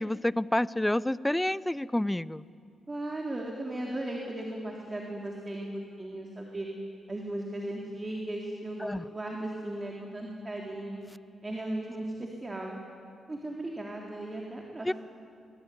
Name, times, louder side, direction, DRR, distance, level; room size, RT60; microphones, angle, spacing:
voice 1, 0.0-2.4 8.8-9.0 14.9-15.0, left 1 dB, 10° left, 18 dB, 0.6 m, -28 dB
voice 2, 2.9-5.7 6.0-6.7 7.1-11.0 11.4-12.7 13.3-14.9, right 1 dB, 25° right, 0 dB, 3.8 m, -36 dB
24.5 x 22.0 x 9.6 m, 2.4 s
cardioid pair, 65°, 0 cm